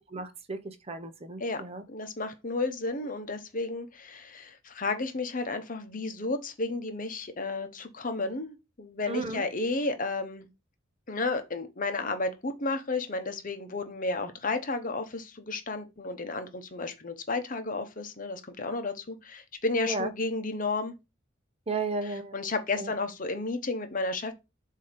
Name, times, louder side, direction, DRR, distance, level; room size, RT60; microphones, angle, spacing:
voice 1, 0.1-1.8 9.1-9.4 19.9-20.1 21.7-22.4 22.8-22.9, right 3 dB, 30° right, 0.8 m, -34 dB
voice 2, 1.9-10.4 11.1-20.9 22.0-24.3, left 3 dB, 45° left, 0.9 m, -32 dB
7.6 x 2.8 x 5.1 m
head